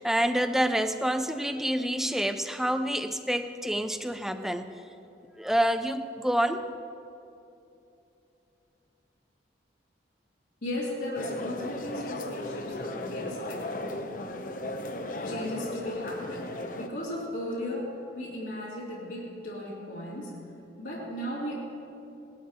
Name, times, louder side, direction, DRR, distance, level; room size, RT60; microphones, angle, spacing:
voice 1, 0.0-4.7 5.4-6.6, equal, ahead, 9 dB, 0.5 m, -27 dB
voice 2, 10.6-13.7 15.1-20.4 20.8-21.5, left 1 dB, 80° left, -8 dB, 2.7 m, -36 dB
sound 1, 11.1-16.9, left 1 dB, 45° left, 0.8 m, -36 dB
19.5 x 12.0 x 4.3 m, 2.8 s
head